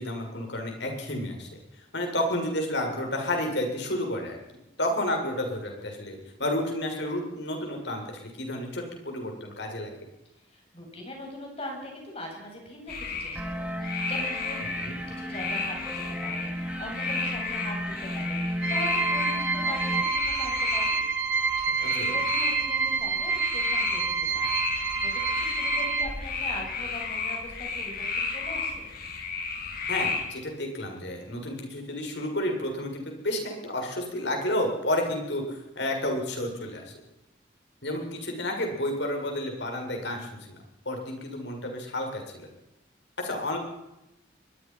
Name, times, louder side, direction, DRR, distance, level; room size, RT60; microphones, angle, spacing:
voice 1, 0.0-1.5 1.9-4.4 4.8-9.9 14.8-15.0 22.0-22.2 29.9-36.9 37.8-40.6 40.9-42.5 43.2-43.6, left 1 dB, 70° left, 2 dB, 7.3 m, -31 dB
voice 2, 10.5-20.9 21.6-28.9, left 1 dB, 30° left, 1 dB, 7.5 m, -41 dB
sound 1, 12.9-30.2, left 4 dB, 55° left, 4.5 m, -33 dB
sound 2, 13.4-20.0, equal, 5° right, 2.1 m, -34 dB
sound 3, 18.6-26.1, right 5 dB, 85° right, 3.1 m, -28 dB
24.5 x 22.0 x 5.9 m, 0.93 s
head